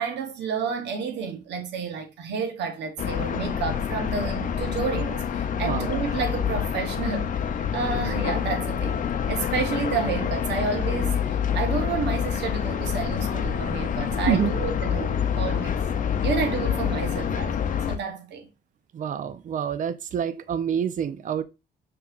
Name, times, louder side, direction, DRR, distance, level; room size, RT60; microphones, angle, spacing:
voice 1, 0.0-7.4 7.7-15.8 16.2-18.5, right 5 dB, 85° right, 0.9 m, -30 dB
sound 1, 3.0-18.0, left 8 dB, 50° left, 0.5 m, -27 dB
voice 2, 18.9-21.4, right 9 dB, 50° right, 0.4 m, -27 dB
5.4 x 3.0 x 2.4 m
cardioid pair, 100°, 18 cm